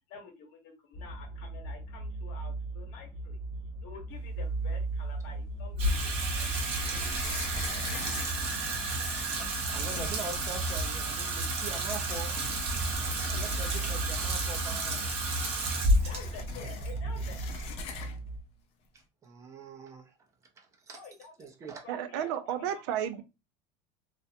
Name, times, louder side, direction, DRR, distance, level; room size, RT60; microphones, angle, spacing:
voice 1, 0.1-3.4 3.8-7.3 7.6-7.9 8.5-8.7 9.2-9.3 16.0-17.4 20.9-21.5 21.8-22.8 23.1-23.2, left 5 dB, 70° left, 1.0 m, -50 dB
sound 1, 0.9-18.4, right 2 dB, 20° left, 0.8 m, -39 dB
sound 2, 4.9-5.7 6.5-9.2 9.7-9.8 10.0-10.4 11.5-11.6 12.2-14.4 14.7-14.8 15.1-18.3, left 4 dB, 45° left, 0.5 m, -43 dB
Water tap faucet / Sink (filling or washing), 5.8-18.1, right 1 dB, 45° right, 0.8 m, -31 dB
voice 2, 9.4-12.3 13.2-15.1 18.9-20.1 20.6-21.0 21.4-21.8, right 3 dB, 20° right, 0.5 m, -43 dB
voice 3, 21.9-23.2, right 9 dB, 80° right, 0.4 m, -32 dB
2.4 x 2.1 x 2.8 m
supercardioid pair, 140°, 14 cm